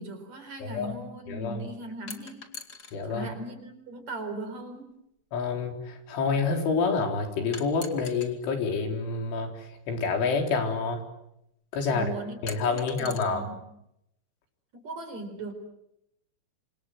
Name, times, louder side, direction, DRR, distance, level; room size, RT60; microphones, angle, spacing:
voice 1, 0.0-2.5 3.0-4.9 11.9-12.4 12.7-13.6 14.7-15.5, right 1 dB, 40° right, 6 dB, 5.2 m, -38 dB
voice 2, 0.6-0.9 1.3-1.6 2.9-3.3 5.3-11.0 11.7-12.1 12.4-13.5, left 4 dB, 80° left, 4 dB, 6.4 m, -28 dB
sound 1, 2.1-3.0 4.2-4.3 7.5-8.3 9.8-9.9 12.5-13.2, left 5 dB, 35° left, 1.9 m, -42 dB
28.5 x 26.5 x 7.9 m, 0.81 s
omnidirectional pair, 5.4 m